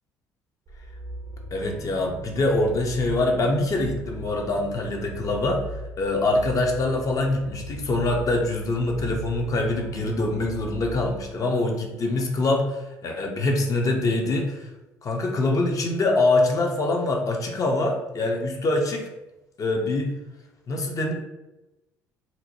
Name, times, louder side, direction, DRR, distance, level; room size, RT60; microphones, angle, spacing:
sound 1, 0.7-11.3, equal, 45° right, 0.5 m, -38 dB
voice 1, 1.5-5.6 6.0-14.7 15.0-19.1 19.6-20.1 20.7-21.1, left 2 dB, 45° left, 2 dB, 0.6 m, -24 dB
2.8 x 2.1 x 2.8 m, 0.98 s
hypercardioid pair, 60°, 8 cm